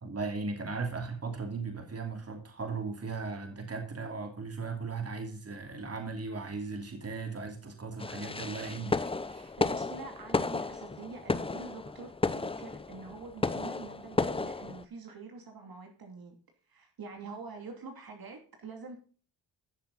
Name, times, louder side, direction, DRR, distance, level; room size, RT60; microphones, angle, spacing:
voice 1, 0.0-9.6, right 4 dB, 30° right, 5 dB, 2.8 m, -37 dB
sound 1, 8.0-14.8, left 3 dB, 10° left, 0.7 m, -33 dB
voice 2, 9.6-16.4 16.7-19.0, right 4 dB, 50° right, 3 dB, 2.7 m, -46 dB
13.5 x 6.9 x 4.0 m, 0.41 s
cardioid pair, 80°, 45 cm